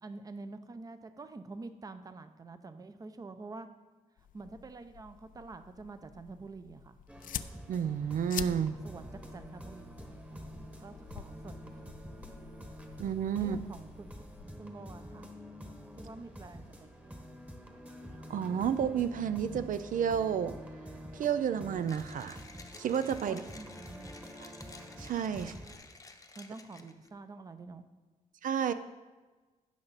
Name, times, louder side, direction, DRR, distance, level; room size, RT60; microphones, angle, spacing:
voice 1, 0.0-3.7 4.3-7.0 8.8-11.9 13.4-15.3 16.0-17.3 23.2-24.3 25.4-25.6 26.4-27.9, right 3 dB, 25° right, 10 dB, 0.7 m, -47 dB
sound 1, 4.2-14.5, left 9 dB, 75° left, 0.5 m, -47 dB
sound 2, 7.1-25.7, equal, 10° right, 1.2 m, -47 dB
voice 2, 7.7-8.7 13.0-13.6 18.3-20.5 21.1-22.4 22.8-23.4 24.4-24.5 25.0-25.5 28.4-28.7, right 8 dB, 70° right, 11 dB, 0.5 m, -31 dB
Mechanisms, 21.8-27.1, left 3 dB, 25° left, 0.8 m, -53 dB
15.5 x 6.6 x 4.1 m, 1.3 s
wide cardioid pair, 130°, 14 cm